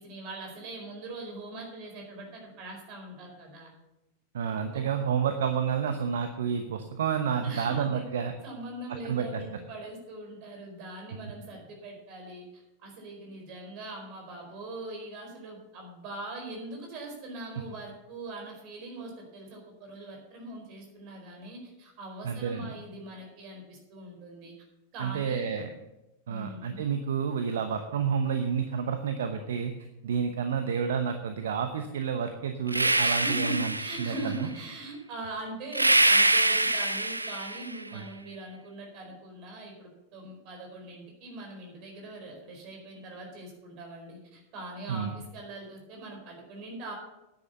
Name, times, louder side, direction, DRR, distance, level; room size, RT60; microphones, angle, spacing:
voice 1, 0.0-3.7 4.7-4.8 7.4-8.0 8.4-24.5 24.9-25.6 26.3-26.9 33.0-46.9, right 2 dB, 40° right, 2 dB, 4.5 m, -41 dB
voice 2, 4.3-8.3 9.0-9.4 22.2-22.7 25.0-25.7 26.3-29.7 30.0-34.5 37.9-38.0 44.9-45.1, right 7 dB, 60° right, 7 dB, 0.9 m, -30 dB
sound 1, 32.7-34.3 35.7-37.8, right 2 dB, 85° right, 0.5 m, -24 dB
9.9 x 8.8 x 6.9 m, 0.94 s
figure-of-eight pair, 90°, 0 cm